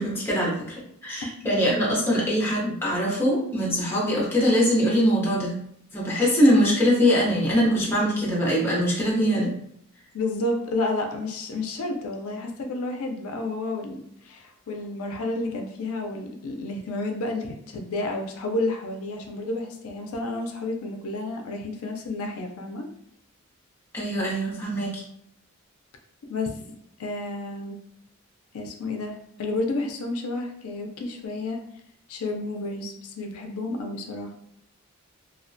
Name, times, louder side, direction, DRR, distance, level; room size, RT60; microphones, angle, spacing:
voice 1, 0.0-5.6 5.9-9.5 23.9-25.0, equal, 10° left, -5 dB, 0.6 m, -22 dB
voice 2, 1.4-1.8 10.1-22.9 26.3-26.6 27.0-27.8 28.5-31.6 32.1-34.3, left 2 dB, 80° left, 3 dB, 0.4 m, -31 dB
2.3 x 2.1 x 2.5 m, 0.72 s
head